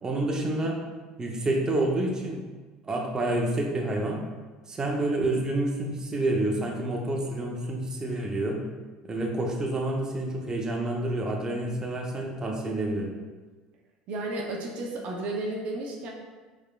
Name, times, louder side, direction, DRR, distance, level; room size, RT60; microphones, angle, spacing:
voice 1, 0.0-0.8 1.2-2.4 2.8-4.2 4.7-8.6 9.0-13.1, right 2 dB, 25° right, 0 dB, 0.7 m, -28 dB
voice 2, 14.1-16.1, right 2 dB, 60° right, -1 dB, 0.6 m, -32 dB
4.7 x 3.4 x 2.3 m, 1.3 s
hypercardioid pair, 85°, 3 cm